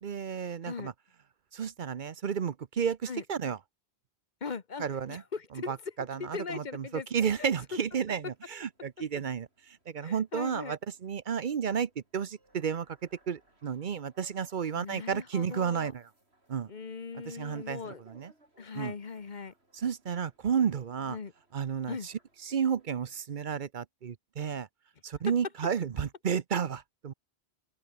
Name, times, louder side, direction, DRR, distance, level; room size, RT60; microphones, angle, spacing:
voice 1, 0.0-0.9 1.5-3.6 4.8-5.2 5.5-13.0 13.3-16.1 16.5-16.7 17.1-18.3 18.7-18.9 19.7-21.2 21.5-22.1 22.4-24.7 25.0-27.1, right 7 dB, 50° right, 0.8 m, -32 dB
voice 2, 4.4-5.8 6.2-7.1 7.4-7.5 10.0-10.8 14.7-15.9 16.7-18.0 18.6-19.5 21.1-21.3 21.9-22.1, left 5 dB, 45° left, 1.2 m, -39 dB
sound 1, 7.9-23.2, right 2 dB, 70° right, 5.9 m, -66 dB
open air
omnidirectional pair, 1.1 m